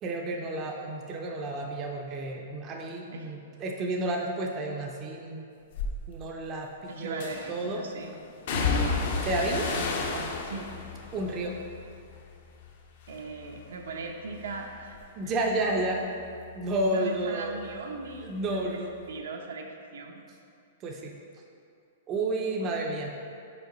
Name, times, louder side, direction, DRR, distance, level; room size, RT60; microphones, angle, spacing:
voice 1, 0.0-5.4 6.1-7.8 9.2-9.6 11.1-11.5 15.2-16.0 16.5-17.6 18.2-18.9 20.8-21.1 22.1-23.1, right 2 dB, 20° right, 0 dB, 0.4 m, -31 dB
sound 1, 5.7-6.0 7.2-7.7 8.5-12.7 13.0-13.7 14.0-17.3 17.6-18.7 19.0-19.1, left 4 dB, 50° left, 0.6 m, -33 dB
voice 2, 6.9-8.1 9.4-10.7 13.1-15.0 15.2-15.4 16.9-20.2 22.5-22.7, right 3 dB, 85° right, 2 dB, 0.7 m, -39 dB
5.0 x 4.8 x 3.9 m, 2.5 s
hypercardioid pair, 165°, 0 cm